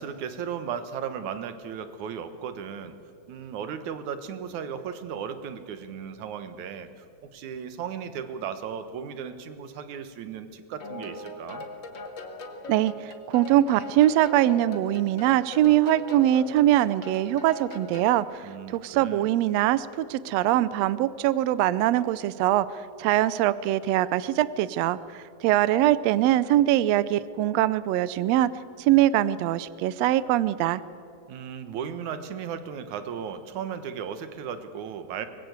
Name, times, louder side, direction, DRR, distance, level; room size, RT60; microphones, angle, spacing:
voice 1, 0.0-2.9 3.3-6.9 7.3-11.7 18.4-19.3 31.3-35.3, right 7 dB, 70° right, 10 dB, 2.5 m, -36 dB
sound 1, 10.8-18.2, left 2 dB, 40° left, 2.1 m, -41 dB
voice 2, 12.7-22.7 23.0-28.5 28.8-30.8, right 13 dB, 85° right, 16 dB, 1.4 m, -23 dB
24.0 x 20.5 x 8.0 m, 2.6 s
omnidirectional pair, 3.7 m